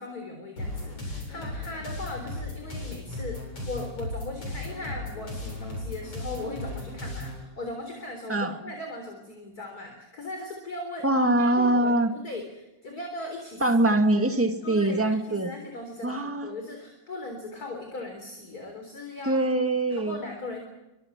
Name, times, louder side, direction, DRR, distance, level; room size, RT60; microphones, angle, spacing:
voice 1, 0.0-11.1 11.4-13.6 14.2-14.4 14.6-19.4 19.9-20.6, left 2 dB, 30° left, 4 dB, 3.9 m, -38 dB
sound 1, 0.6-7.4, left 2 dB, 45° left, 9.0 m, -36 dB
voice 2, 8.3-8.6 11.0-12.1 13.6-15.5 16.0-16.5 19.2-20.2, right 1 dB, 5° right, 5 dB, 1.3 m, -23 dB
29.0 x 25.5 x 6.1 m, 0.99 s
omnidirectional pair, 3.6 m